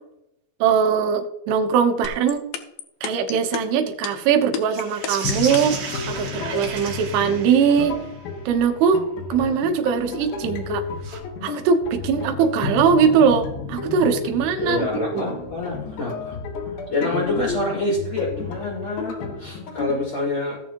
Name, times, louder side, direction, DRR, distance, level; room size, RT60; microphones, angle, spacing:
voice 1, 0.6-2.4 3.0-8.0 8.5-9.0 9.3-10.8 11.4-14.9 15.1-15.3, right 7 dB, 70° right, 5 dB, 2.8 m, -21 dB
sound 1, 2.0-5.8, left 9 dB, 90° left, 2.0 m, -29 dB
sound 2, 4.7-8.2 11.0-11.2, right 5 dB, 55° right, 2.8 m, -33 dB
sound 3, 5.2-20.0, left 5 dB, 65° left, 2.7 m, -32 dB
voice 2, 14.6-16.4 16.9-20.6, left 2 dB, 25° left, -9 dB, 4.6 m, -26 dB
17.0 x 6.9 x 3.0 m, 0.83 s
omnidirectional pair, 5.4 m